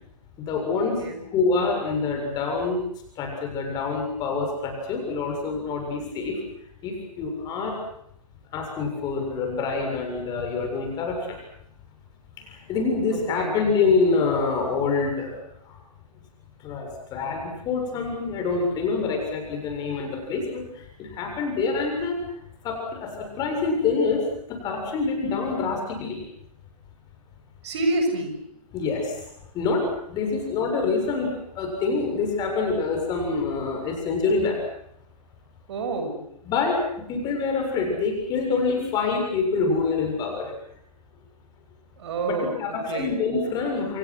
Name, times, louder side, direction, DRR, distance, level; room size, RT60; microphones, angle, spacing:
voice 1, 0.4-1.0 1.3-2.8 3.2-6.4 6.8-7.8 8.5-11.4 12.4-15.4 15.7-15.8 16.6-22.2 22.6-26.2 28.7-29.2 29.5-34.6 36.5-36.8 37.1-40.5 42.2-44.0, left 4 dB, 20° left, 2 dB, 7.2 m, -26 dB
voice 2, 13.1-13.5 27.6-28.3 35.7-36.2 42.0-43.1, right 2 dB, 45° right, 5 dB, 7.1 m, -28 dB
29.0 x 28.0 x 6.4 m, 0.74 s
figure-of-eight pair, 130°, 20 cm